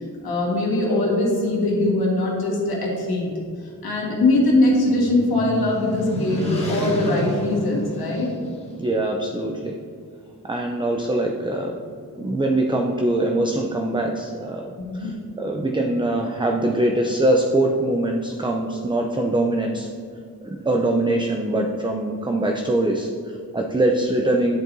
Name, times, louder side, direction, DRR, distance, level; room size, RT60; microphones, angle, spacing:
voice 1, 0.2-3.3 3.6-8.3 14.9-15.2, left 2 dB, 85° left, -3 dB, 1.6 m, -21 dB
sound 1, 3.9-8.7, left 1 dB, 15° left, 1.6 m, -31 dB
voice 2, 8.8-9.7 10.4-11.8 12.1-19.9 20.4-24.6, right 1 dB, 15° right, 2 dB, 0.5 m, -23 dB
10.5 x 4.4 x 2.7 m, 2.3 s
cardioid pair, 75°, 36 cm